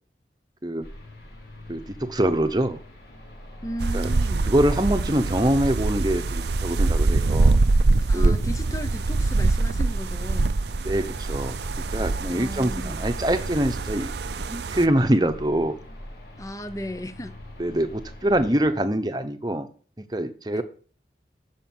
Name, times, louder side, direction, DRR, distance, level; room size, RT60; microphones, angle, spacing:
sound 1, 0.8-18.7, left 1 dB, 65° left, 4.3 m, -41 dB
voice 1, 1.7-2.8 3.9-4.1 4.4-7.6 8.1-8.4 10.8-11.6 11.9-14.1 14.5-15.7 17.6-19.7 20.0-20.6, right 1 dB, 25° right, 0.9 m, -24 dB
voice 2, 3.6-4.5 8.0-10.6 12.3-13.0 16.4-17.4 20.5-20.6, equal, 20° left, 0.7 m, -35 dB
sound 2, 3.8-14.9, right 3 dB, 70° right, 0.6 m, -24 dB
13.5 x 5.3 x 7.2 m
head